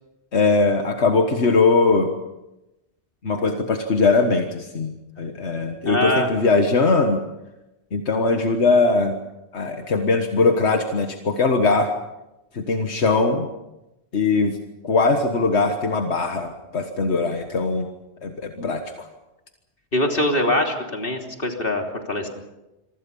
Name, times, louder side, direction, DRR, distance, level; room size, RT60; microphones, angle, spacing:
voice 1, 0.3-2.1 3.2-7.2 7.9-9.2 9.5-11.9 12.5-13.5 14.1-14.6 14.8-17.9 18.2-19.1, left 3 dB, 85° left, 5 dB, 1.8 m, -20 dB
voice 2, 5.9-6.3 19.9-22.3, left 1 dB, 55° left, 2 dB, 3.6 m, -23 dB
27.0 x 24.0 x 5.5 m, 0.98 s
omnidirectional pair, 1.1 m